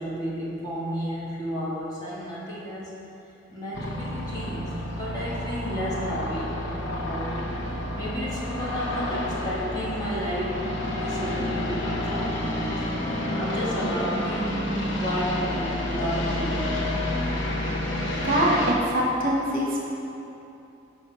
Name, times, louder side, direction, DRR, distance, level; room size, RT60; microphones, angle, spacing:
voice 1, 0.0-3.0 3.5-7.5 7.9-10.6 10.8-12.7 13.3-16.9, equal, 20° left, -7 dB, 1.3 m, -32 dB
sound 1, 3.7-18.7, left 1 dB, 75° left, 0.9 m, -29 dB
voice 2, 18.2-19.9, right 1 dB, 45° right, -3 dB, 1.0 m, -23 dB
6.5 x 5.3 x 4.4 m, 2.9 s
head